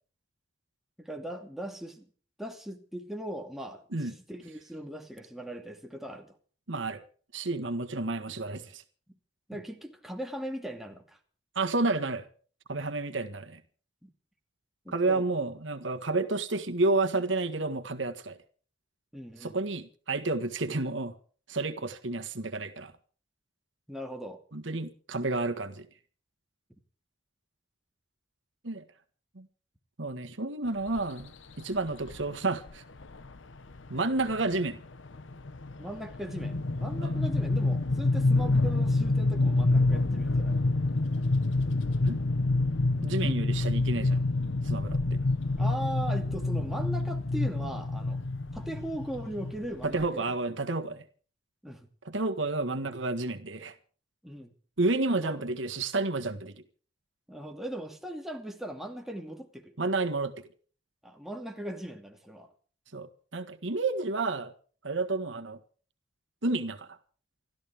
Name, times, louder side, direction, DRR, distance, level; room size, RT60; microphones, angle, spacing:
voice 1, 1.0-2.1 2.4-6.4 9.5-11.2 14.0-14.1 14.8-15.2 19.1-19.6 23.9-24.4 35.8-40.6 43.2-43.4 45.6-48.2 48.5-50.2 51.6-51.9 54.2-54.5 55.2-55.4 57.3-59.7 61.0-62.5, right 1 dB, ahead, 2.5 m, -39 dB
voice 2, 6.7-7.0 7.3-8.8 11.5-12.3 12.7-13.6 14.9-18.4 19.4-21.1 21.5-22.9 24.5-25.9 28.6-28.8 29.3-29.5 30.0-31.3 31.6-32.8 33.9-34.8 37.0-37.1 42.0-42.2 43.0-44.2 44.6-45.2 49.8-51.0 52.0-53.7 54.8-56.5 59.8-60.3 62.9-64.5 64.8-65.6 66.4-67.0, right 2 dB, 75° right, 1.7 m, -30 dB
sound 1, 31.0-31.2 32.1-32.2 32.6-32.7 33.0-33.3 33.7-50.1, left 2 dB, 80° left, 1.0 m, -27 dB
29.0 x 13.5 x 3.6 m
head